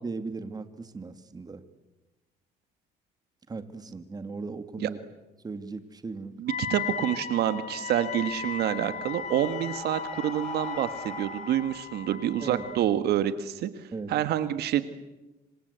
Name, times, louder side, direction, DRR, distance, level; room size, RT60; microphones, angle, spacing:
voice 1, 0.0-1.6 3.5-5.0 5.4-6.3 12.4-12.7 13.9-14.1, right 4 dB, 25° right, 10 dB, 2.1 m, -37 dB
voice 2, 6.4-13.7 14.1-14.8, right 11 dB, 70° right, 12 dB, 1.6 m, -27 dB
Wind instrument woodwind instrument, 6.5-12.9, left 7 dB, 50° left, 2.8 m, -37 dB
Breathing, 8.2-12.9, left 1 dB, 5° left, 3.0 m, -45 dB
26.5 x 26.0 x 8.2 m, 1.1 s
cardioid pair, 110°, 17 cm